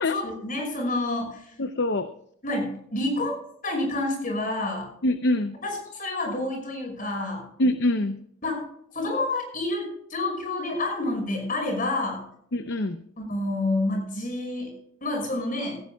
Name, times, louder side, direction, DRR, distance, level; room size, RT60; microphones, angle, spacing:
voice 1, 0.1-1.5 2.4-3.3 3.6-4.9 5.6-7.5 8.4-8.6 8.9-12.2 13.2-14.7 15.0-15.8, left 2 dB, 45° left, 2 dB, 5.7 m, -28 dB
voice 2, 1.6-2.1 5.0-5.5 7.6-8.2 12.5-13.0, left 1 dB, 60° left, 9 dB, 0.7 m, -24 dB
16.5 x 16.5 x 2.3 m, 0.67 s
head